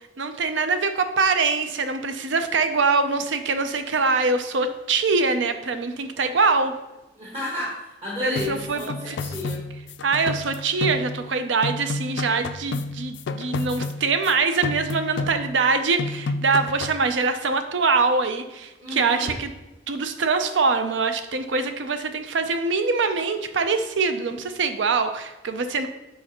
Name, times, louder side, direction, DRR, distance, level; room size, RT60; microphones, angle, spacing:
voice 1, 0.2-6.8 8.2-9.2 10.0-19.5 19.9-25.9, right 4 dB, 80° right, 9 dB, 0.5 m, -23 dB
voice 2, 7.2-9.6 18.8-19.4, left 1 dB, 35° right, -6 dB, 1.2 m, -32 dB
sound 1, 8.4-11.4 11.6-14.3 14.6-15.7 16.0-17.1, left 3 dB, 70° left, 0.3 m, -31 dB
6.5 x 5.0 x 2.9 m, 1.0 s
head